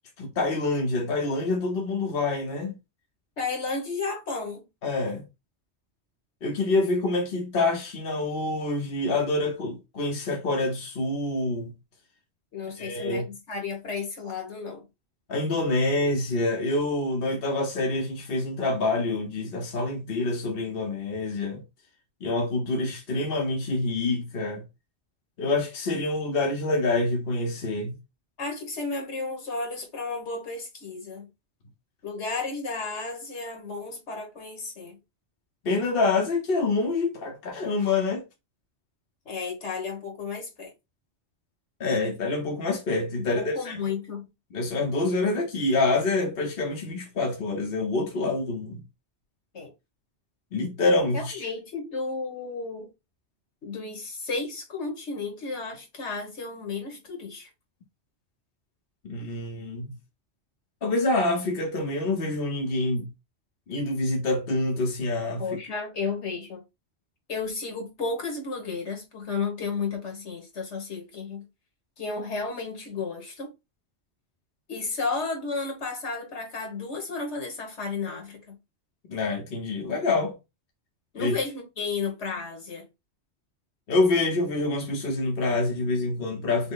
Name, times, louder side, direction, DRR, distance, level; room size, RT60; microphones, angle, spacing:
voice 1, 0.2-2.8 4.8-5.2 6.4-11.7 12.8-13.2 15.3-21.6 22.2-24.6 25.4-27.9 35.6-38.2 41.8-43.8 44.5-48.8 50.5-51.5 59.0-59.9 60.8-63.1 63.7-65.4 79.1-80.3 81.2-81.4 83.9-86.7, left 2 dB, 60° left, 1.2 m, -26 dB
voice 2, 3.4-4.6 12.5-14.8 28.4-31.3 32.0-35.0 39.2-40.7 43.2-44.3 49.5-49.7 51.1-52.9 53.6-57.5 65.4-66.6 67.3-71.4 72.0-73.5 74.7-78.6 81.1-82.8, left 4 dB, 80° left, 1.7 m, -33 dB
5.8 x 2.1 x 3.9 m
omnidirectional pair, 1.1 m